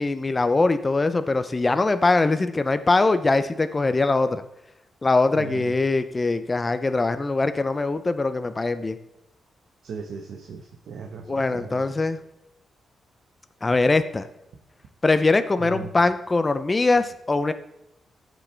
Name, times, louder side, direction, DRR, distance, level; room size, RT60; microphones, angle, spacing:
voice 1, 0.0-4.4 5.0-9.0 11.3-12.2 13.6-14.2 15.0-17.5, left 3 dB, 20° left, 11 dB, 0.5 m, -22 dB
voice 2, 5.3-5.7 9.8-11.8 15.6-15.9, right 5 dB, 75° right, 2 dB, 1.0 m, -37 dB
14.5 x 6.2 x 3.3 m, 0.86 s
wide cardioid pair, 150°, 0 cm